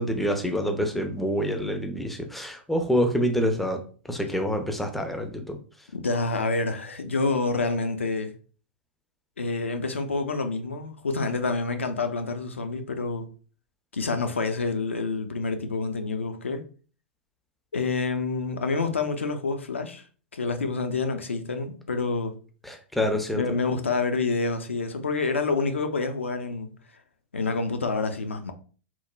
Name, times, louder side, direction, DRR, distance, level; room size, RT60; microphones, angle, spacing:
voice 1, 0.0-3.8 4.1-5.6 22.6-23.6, equal, ahead, 0.3 m, -27 dB
voice 2, 5.9-8.3 9.4-13.3 13.9-16.6 17.7-20.0 20.3-22.4 23.4-26.7 27.3-28.5, left 3 dB, 75° left, 0.4 m, -28 dB
3.0 x 2.0 x 2.2 m
figure-of-eight pair, 95°, 7 cm